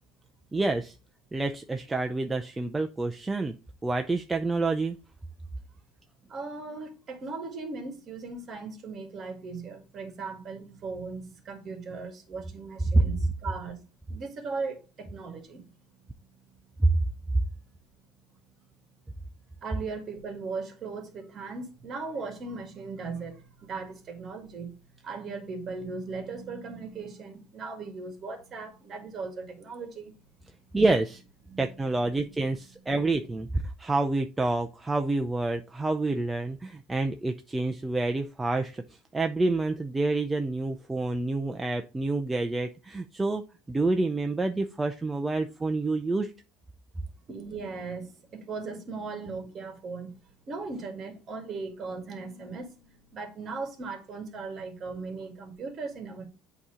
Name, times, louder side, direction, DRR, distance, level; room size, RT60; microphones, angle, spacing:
voice 1, 0.5-0.9 1.3-3.5 3.8-5.0 12.9-13.1 16.8-17.0 30.7-31.2 31.6-38.8 39.1-43.4 43.7-46.3, right 2 dB, 10° right, 0.5 m, -27 dB
voice 2, 6.3-13.8 14.1-17.2 19.6-24.7 25.0-30.1 31.5-31.8 47.3-50.1 50.5-56.3, right 4 dB, 35° right, 1.8 m, -38 dB
8.1 x 2.9 x 4.8 m
cardioid pair, 130°, 0 cm